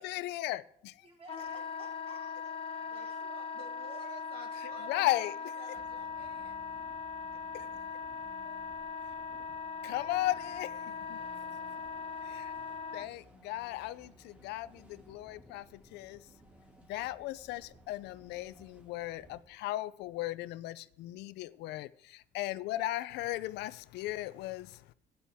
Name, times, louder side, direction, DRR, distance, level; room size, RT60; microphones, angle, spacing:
voice 1, 0.0-1.1 4.6-5.3 7.5-7.6 8.4-8.6 9.8-11.2 12.2-12.5 12.9-16.3 16.9-24.9, left 16 dB, 85° left, 0.5 m, -36 dB
voice 2, 1.0-4.1 5.0-5.1, right 2 dB, 35° right, 4.0 m, -56 dB
Wind instrument woodwind instrument, 1.3-13.1, left 5 dB, 35° left, 0.5 m, -40 dB
voice 3, 2.9-6.7, right 3 dB, 65° right, 1.8 m, -52 dB
sound 1, 5.7-19.4, right 1 dB, 10° right, 2.2 m, -59 dB
12.5 x 9.2 x 3.5 m
cardioid pair, 110°, 17 cm